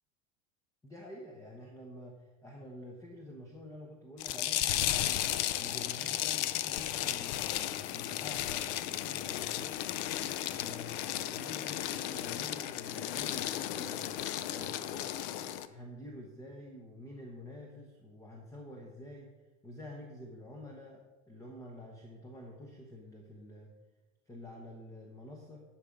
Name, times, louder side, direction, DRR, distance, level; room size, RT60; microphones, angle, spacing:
voice 1, 0.8-9.8 10.4-14.1 14.5-19.3 19.6-23.7 24.3-25.6, left 1 dB, 10° left, 0 dB, 0.9 m, -48 dB
sound 1, 4.2-15.7, left 13 dB, 65° left, 0.6 m, -34 dB
10.5 x 6.1 x 5.2 m, 1.2 s
cardioid pair, 155°, 34 cm